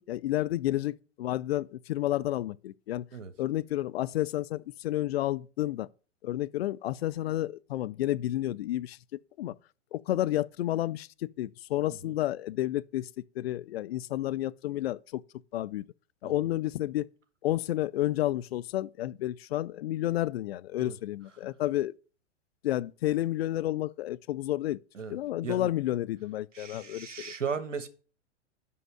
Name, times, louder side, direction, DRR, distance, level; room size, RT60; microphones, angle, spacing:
voice 1, 0.0-3.1 3.4-5.9 6.2-9.6 9.9-13.1 13.4-15.2 15.5-15.8 16.2-17.1 17.4-21.9 22.6-24.8 25.1-27.3, left 14 dB, 55° left, 0.4 m, -31 dB
voice 2, 26.5-27.9, right 6 dB, 90° right, 1.1 m, -36 dB
5.5 x 5.4 x 6.6 m
hypercardioid pair, 110°, 37 cm